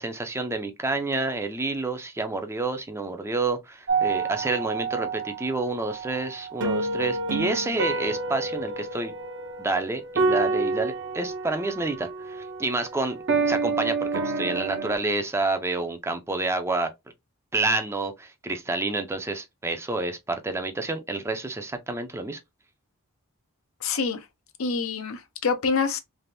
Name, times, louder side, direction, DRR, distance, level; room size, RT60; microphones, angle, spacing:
voice 1, 0.0-9.1 9.6-16.9 17.5-22.4, right 2 dB, 10° right, 0.4 m, -29 dB
sound 1, 3.9-15.0, right 4 dB, 60° right, 0.6 m, -29 dB
voice 2, 23.8-24.2 24.6-26.0, left 5 dB, 75° left, 0.6 m, -26 dB
3.3 x 2.5 x 2.5 m
head